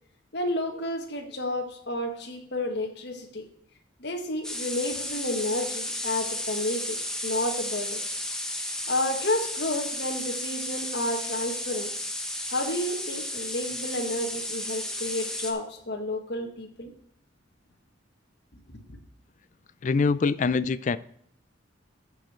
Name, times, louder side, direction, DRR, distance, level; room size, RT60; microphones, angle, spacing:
voice 1, 0.3-3.4 4.0-8.0 8.9-11.9 12.5-16.9 18.7-18.8, left 1 dB, 60° left, 1.6 m, -31 dB
sound 1, 4.4-15.5, left 1 dB, 5° left, 0.9 m, -33 dB
voice 2, 19.8-21.0, left 4 dB, 40° left, 0.3 m, -24 dB
13.5 x 5.2 x 4.4 m
head